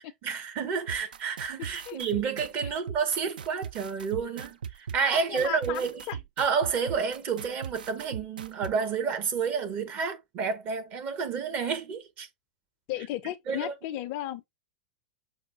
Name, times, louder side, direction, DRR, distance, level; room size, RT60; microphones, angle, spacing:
voice 1, 0.2-6.0 6.4-12.3 13.5-13.7, right 6 dB, 35° right, 0.9 m, -30 dB
sound 1, 0.9-8.7, right 7 dB, 65° right, 0.4 m, -39 dB
voice 2, 5.1-6.2 12.9-14.4, left 14 dB, 40° left, 0.4 m, -35 dB
6.0 x 2.2 x 2.5 m
figure-of-eight pair, 95°, 5 cm